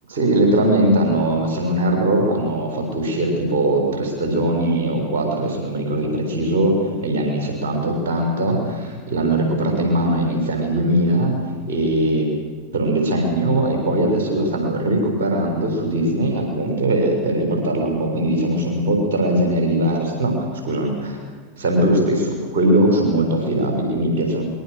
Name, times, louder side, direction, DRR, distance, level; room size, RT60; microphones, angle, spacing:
voice 1, 0.1-12.3 12.7-21.2 21.6-24.5, right 1 dB, 70° right, 2 dB, 6.6 m, -20 dB
26.0 x 23.0 x 6.7 m, 1.5 s
hypercardioid pair, 90°, 0 cm